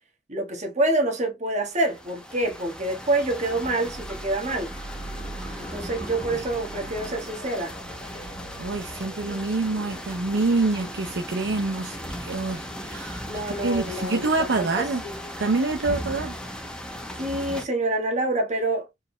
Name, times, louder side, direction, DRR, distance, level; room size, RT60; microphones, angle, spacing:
voice 1, 0.3-4.7 5.6-7.8 13.3-15.1 17.2-18.9, right 2 dB, 40° right, 1.5 m, -27 dB
sound 1, 1.7-17.7, equal, 5° left, 0.8 m, -37 dB
sound 2, 3.8-15.2, right 1 dB, 45° left, 1.1 m, -44 dB
voice 2, 8.6-13.3 13.6-15.0 15.4-16.3, right 3 dB, 70° right, 0.7 m, -26 dB
4.5 x 3.6 x 2.2 m
head